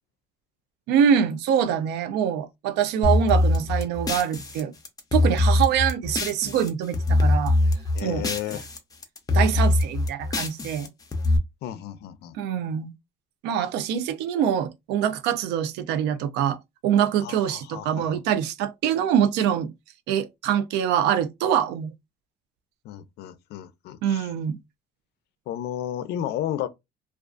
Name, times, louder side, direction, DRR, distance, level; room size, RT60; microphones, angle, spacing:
voice 1, 0.9-4.7 5.1-7.6 8.0-8.3 9.3-10.9 12.3-12.9 13.4-19.7 20.1-21.9 24.0-24.6, right 9 dB, 90° right, 0.4 m, -24 dB
sound 1, 3.0-6.7 6.9-8.8 9.0-11.4, left 2 dB, 20° left, 0.6 m, -23 dB
voice 2, 7.9-8.7 11.6-12.4 17.2-18.2 22.8-24.3 25.5-26.7, left 11 dB, 75° left, 0.4 m, -33 dB
2.4 x 2.3 x 2.3 m
cardioid pair, 110°, 17 cm